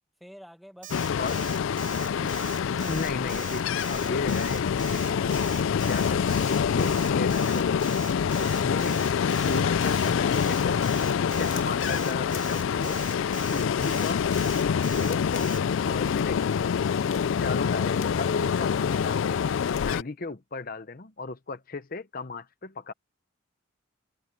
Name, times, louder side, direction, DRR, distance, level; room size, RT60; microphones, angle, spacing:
voice 1, 0.2-2.0, equal, ahead, 1.3 m, -51 dB
Alarm, 0.8-15.6, right 12 dB, 40° right, 0.4 m, -42 dB
Ocean, 0.9-20.0, left 7 dB, 70° left, 0.3 m, -26 dB
voice 2, 2.6-5.5 5.9-8.0 8.4-9.0 9.5-10.8 11.3-13.0 13.5-14.2 14.9-15.5 15.9-16.5 16.9-19.4 19.8-22.9, left 3 dB, 45° left, 0.8 m, -35 dB
sound 1, 9.7-10.1 10.4-11.9 12.2-12.7 13.1-13.5 13.9-14.6 15.0-15.5 15.8-16.3 16.8-18.4 18.7-20.0, left 10 dB, 85° left, 2.0 m, -48 dB
head